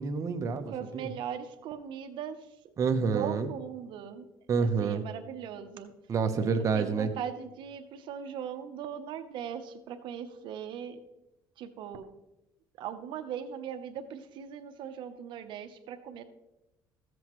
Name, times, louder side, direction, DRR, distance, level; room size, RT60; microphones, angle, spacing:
voice 1, 0.0-1.1 2.8-3.5 4.5-5.0 6.1-7.1, right 5 dB, 40° right, 6 dB, 0.8 m, -28 dB
voice 2, 0.7-2.5 3.0-4.3 4.6-5.9 6.5-11.0 11.6-12.1 12.8-16.2, right 8 dB, 70° right, 8 dB, 0.8 m, -39 dB
14.5 x 7.8 x 3.1 m, 0.92 s
cardioid pair, 120°, 9 cm